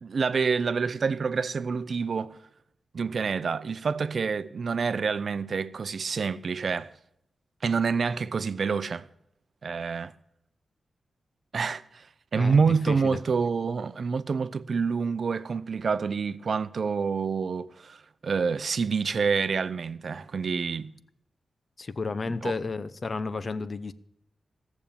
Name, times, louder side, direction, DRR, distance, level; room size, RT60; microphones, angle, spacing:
voice 1, 0.0-2.4 2.9-6.9 7.6-9.1 9.6-10.1 11.5-12.1 12.3-20.9 22.4-22.5, right 5 dB, 60° right, 0.6 m, -27 dB
voice 2, 12.4-13.2 21.8-23.9, left 3 dB, 45° left, 0.8 m, -32 dB
17.0 x 7.1 x 8.6 m
wide cardioid pair, 95°, 0 cm